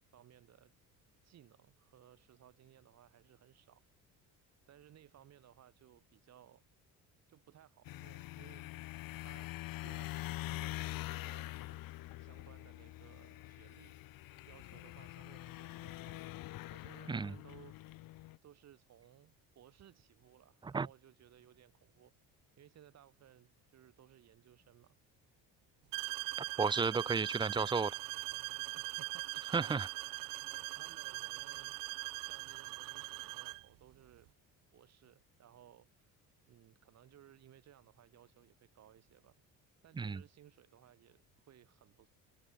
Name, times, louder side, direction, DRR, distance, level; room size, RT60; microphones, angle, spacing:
voice 1, 0.1-0.7 1.2-3.8 4.7-6.6 7.3-8.7 9.2-9.6 9.8-11.8 12.2-14.0 14.5-16.2 16.7-17.8 18.4-22.1 22.6-25.0 28.7-30.2 30.8-31.8 32.2-34.3 34.7-36.2 36.5-39.3 39.8-42.1, right 11 dB, 50° right, 5.2 m, -61 dB
sound 1, 7.9-18.4, left 17 dB, 75° left, 2.2 m, -45 dB
sound 2, 25.9-33.7, right 21 dB, 70° right, 0.6 m, -41 dB
voice 2, 26.6-27.9 29.5-29.9 40.0-40.2, right 4 dB, 15° right, 0.5 m, -32 dB
cardioid pair, 155°, 34 cm